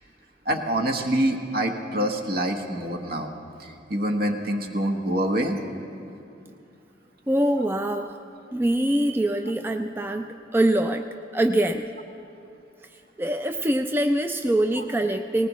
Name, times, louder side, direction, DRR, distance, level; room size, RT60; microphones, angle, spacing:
voice 1, 0.4-3.3 3.6-5.6, right 1 dB, 60° right, 4 dB, 1.2 m, -26 dB
voice 2, 7.3-8.2 8.5-11.0 11.3-11.9 13.2-15.5, right 1 dB, 10° right, 6 dB, 0.3 m, -24 dB
19.5 x 19.0 x 3.1 m, 2.6 s
head